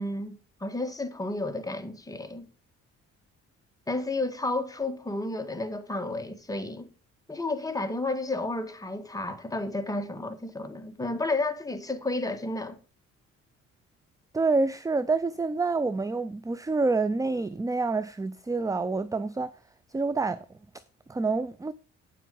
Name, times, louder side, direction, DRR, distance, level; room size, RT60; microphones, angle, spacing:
voice 1, 0.0-2.5 3.9-6.9 7.3-12.8, left 2 dB, 10° left, 1.8 m, -32 dB
voice 2, 14.3-19.5 19.9-20.5 21.1-21.7, right 3 dB, 10° right, 0.5 m, -27 dB
9.1 x 7.5 x 5.4 m
cardioid pair, 90°, 30 cm